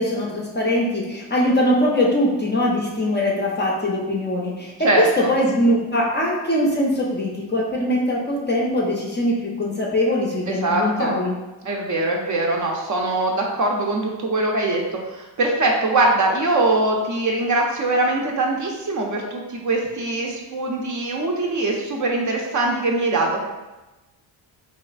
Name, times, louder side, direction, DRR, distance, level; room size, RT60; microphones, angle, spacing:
voice 1, 0.0-11.4, left 1 dB, 25° left, -2 dB, 0.4 m, -22 dB
voice 2, 4.8-5.3 10.5-11.2 11.6-23.4, right 2 dB, 40° right, 0 dB, 0.5 m, -22 dB
2.9 x 2.3 x 2.4 m, 1.1 s
cardioid pair, 85°, 47 cm